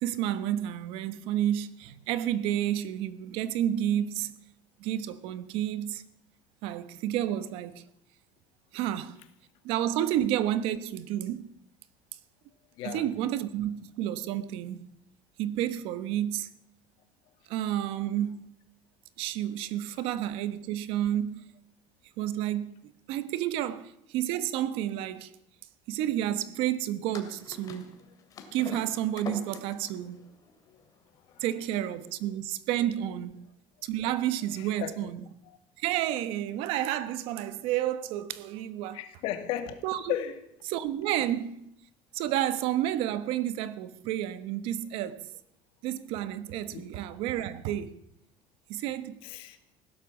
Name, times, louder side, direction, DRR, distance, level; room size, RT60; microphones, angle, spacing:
voice 1, 0.0-4.4 4.8-6.0 6.6-7.8 8.7-9.2 9.6-11.5 12.8-14.9 15.4-16.5 17.5-18.5 19.2-21.4 22.2-25.3 25.9-28.0 28.5-30.3 31.4-33.4 33.8-35.2 35.8-39.0 39.8-40.1 40.7-41.7 42.1-45.3 45.8-47.9 48.7-49.2, right 12 dB, 70° right, 1.1 m, -30 dB
voice 2, 12.8-13.1 30.7-30.8 31.3-31.4 34.5-35.1 35.4-35.6 38.9-39.8 40.1-40.4 46.7-46.8 49.2-49.6, left 11 dB, 65° left, 2.0 m, -35 dB
sound 1, 27.1-32.3, left 6 dB, 35° left, 2.5 m, -45 dB
16.5 x 12.0 x 7.2 m
cardioid pair, 145°, 10 cm